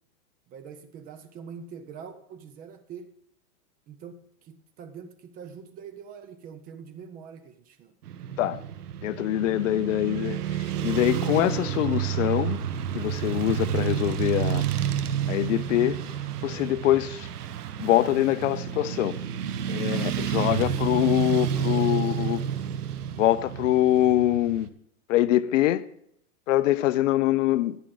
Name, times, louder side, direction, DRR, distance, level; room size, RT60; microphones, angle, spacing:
voice 1, 0.5-3.1 3.9-8.0 20.3-20.9, right 6 dB, 20° right, 0.6 m, -44 dB
Motorcycle / Traffic noise roadway noise, 8.1-24.7, right 9 dB, 85° right, 1.2 m, -30 dB
voice 2, 9.0-12.6 12.9-14.6 15.3-16.0 16.4-17.3 17.8-19.2 19.7-22.4 23.2-24.7 25.1-25.8 26.5-27.8, left 14 dB, 55° left, 0.6 m, -24 dB
13.5 x 10.0 x 3.9 m
hypercardioid pair, 145°, 45 cm